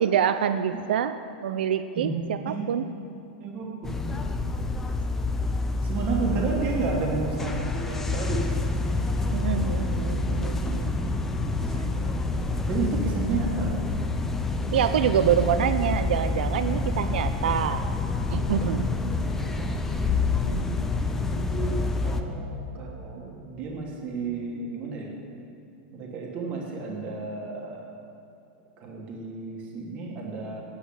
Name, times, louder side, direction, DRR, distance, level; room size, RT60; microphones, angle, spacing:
voice 1, 0.0-1.1 1.4-2.8 9.3-10.9 11.7-11.9 14.7-17.8 18.3-18.8 20.4-20.9, right 9 dB, 85° right, 10 dB, 0.4 m, -26 dB
voice 2, 1.9-2.7 3.4-4.4 5.8-8.7 9.5-9.7 11.7-13.8 18.6-18.9 19.2-19.7 21.0-21.1 21.5-21.8 22.0-25.1 25.9-27.9 28.8-30.6, right 4 dB, 25° right, -1 dB, 1.3 m, -32 dB
sound 1, 3.8-22.2, left 3 dB, 5° left, 0.4 m, -27 dB
8.4 x 7.1 x 8.5 m, 2.7 s
supercardioid pair, 175°, 5 cm